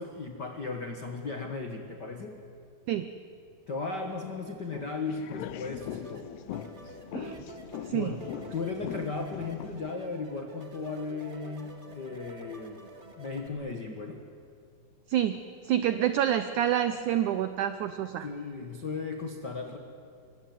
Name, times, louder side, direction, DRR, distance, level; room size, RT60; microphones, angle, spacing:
voice 1, 0.0-2.4 3.7-6.3 7.9-8.2 8.5-12.8 13.2-14.2 18.2-19.8, left 4 dB, 70° left, 5 dB, 1.0 m, -36 dB
sound 1, 4.7-9.9, left 11 dB, 90° left, 3.0 m, -41 dB
sound 2, 5.8-13.5, right 2 dB, 65° right, 0.6 m, -49 dB
voice 2, 7.1-7.4 7.8-8.1 15.1-18.3, right 11 dB, 80° right, 11 dB, 1.7 m, -28 dB
26.0 x 24.0 x 9.4 m, 2.4 s
omnidirectional pair, 4.5 m